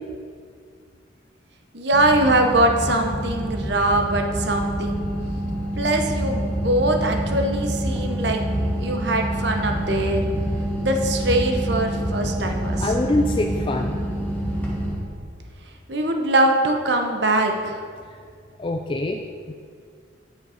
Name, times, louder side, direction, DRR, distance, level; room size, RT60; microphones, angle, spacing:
voice 1, 1.7-5.0 5.8-8.4 8.8-10.2 10.8-13.0 15.9-17.8, right 1 dB, 60° right, 3 dB, 1.0 m, -22 dB
sound 1, 1.9-15.0, equal, 10° left, 1.4 m, -26 dB
voice 2, 12.8-14.0 18.1-18.2 18.6-19.5, left 2 dB, 25° left, 3 dB, 0.3 m, -24 dB
9.6 x 6.3 x 5.0 m, 2.1 s
head